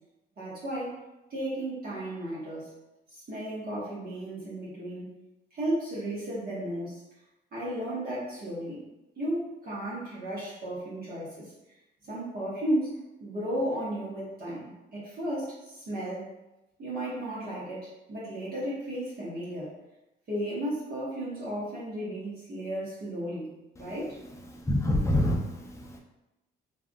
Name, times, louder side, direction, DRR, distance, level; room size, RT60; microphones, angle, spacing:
voice 1, 0.4-1.0 1.3-2.7 3.1-5.1 5.5-7.0 7.5-8.8 9.2-11.5 12.0-16.3 16.8-19.7 20.3-23.5 23.8-24.2, right 1 dB, 50° right, -9 dB, 1.3 m, -34 dB
voice 2, 24.7-26.0, left 1 dB, 15° left, 0 dB, 0.5 m, -27 dB
3.4 x 2.5 x 2.3 m, 0.95 s
cardioid pair, 90°, 20 cm